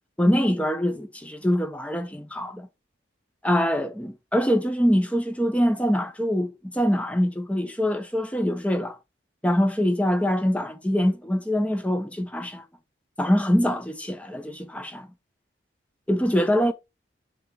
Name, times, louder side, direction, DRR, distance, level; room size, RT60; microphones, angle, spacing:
voice 1, 0.2-2.7 3.4-9.0 9.4-12.6 13.2-15.1 16.1-16.7, equal, 5° left, 1.0 m, -24 dB
6.8 x 3.7 x 4.9 m
head